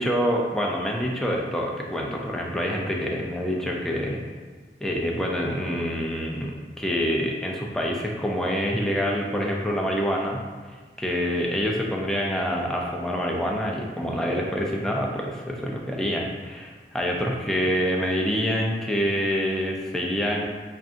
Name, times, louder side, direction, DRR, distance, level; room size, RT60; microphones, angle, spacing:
voice 1, 0.0-4.2 4.8-10.4 10.7-20.4, equal, 5° left, -2 dB, 0.4 m, -26 dB
5.4 x 2.4 x 2.5 m, 1.4 s
head